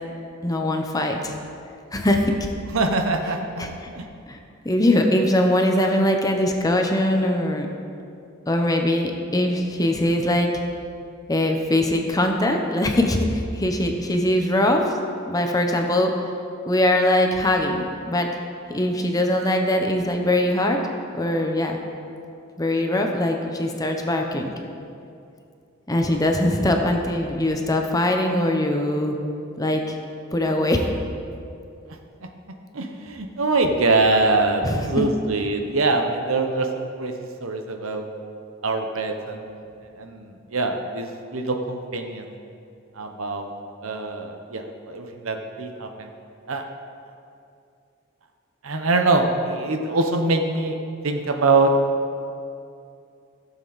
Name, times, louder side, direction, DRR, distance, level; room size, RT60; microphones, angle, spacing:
voice 1, 0.4-1.3 1.9-2.3 3.6-3.9 4.3-4.4 4.6-7.7 8.5-10.5 11.3-14.9 15.2-16.1 16.7-18.3 18.7-20.8 21.1-21.8 22.6-24.5 25.9-29.1 29.6-29.9 30.3-30.9 34.6-34.9, left 1 dB, 20° left, 3 dB, 0.8 m, -21 dB
voice 2, 2.7-3.7 3.9-4.1 32.7-37.1 37.4-38.1 38.6-39.6 40.0-42.3 43.0-43.5 43.8-46.1 46.5-46.6 48.6-50.8 51.0-51.7, right 3 dB, 85° right, 4 dB, 1.0 m, -23 dB
15.5 x 7.2 x 4.1 m, 2.5 s
head